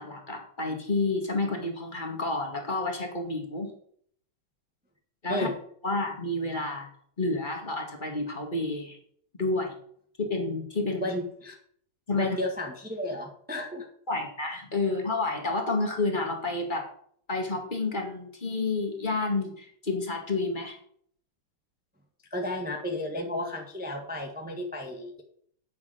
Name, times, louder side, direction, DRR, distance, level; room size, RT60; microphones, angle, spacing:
voice 1, 0.0-3.7 5.2-5.5 5.8-6.9 7.2-9.0 9.4-9.7 10.2-11.1 12.1-12.4 14.1-16.9 17.3-20.8, left 3 dB, 20° left, 2 dB, 2.3 m, -30 dB
voice 2, 11.0-11.5 12.2-13.9 22.3-25.2, left 1 dB, 5° right, 2 dB, 1.4 m, -33 dB
9.2 x 7.1 x 8.0 m, 0.63 s
omnidirectional pair, 2.4 m